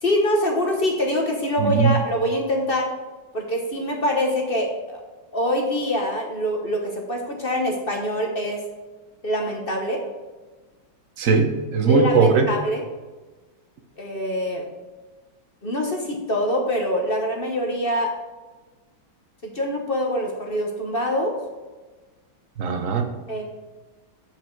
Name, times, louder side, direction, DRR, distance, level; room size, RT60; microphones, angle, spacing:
voice 1, 0.0-2.9 3.3-5.0 5.3-8.6 9.2-10.0 11.9-12.8 14.0-14.7 15.6-18.1 19.4-21.3 23.3-23.4, left 1 dB, 35° left, 1 dB, 1.1 m, -24 dB
voice 2, 1.6-2.0 11.2-12.5 22.6-23.1, right 5 dB, 50° right, 6 dB, 1.1 m, -19 dB
8.0 x 7.3 x 4.6 m, 1.3 s
omnidirectional pair, 2.1 m